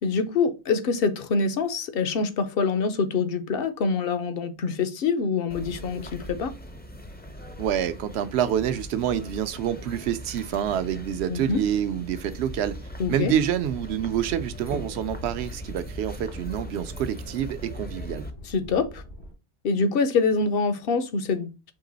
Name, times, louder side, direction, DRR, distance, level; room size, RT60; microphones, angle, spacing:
voice 1, 0.0-6.5 11.3-11.6 13.0-13.3 18.5-19.0 19.6-21.5, left 4 dB, 65° left, 0.8 m, -25 dB
sound 1, 5.5-18.3, equal, 15° left, 0.4 m, -40 dB
voice 2, 7.6-12.8 13.1-18.3, right 10 dB, 85° right, 0.8 m, -27 dB
sound 2, 13.6-19.3, equal, 85° left, 2.9 m, -43 dB
4.8 x 2.9 x 3.8 m
omnidirectional pair, 1.1 m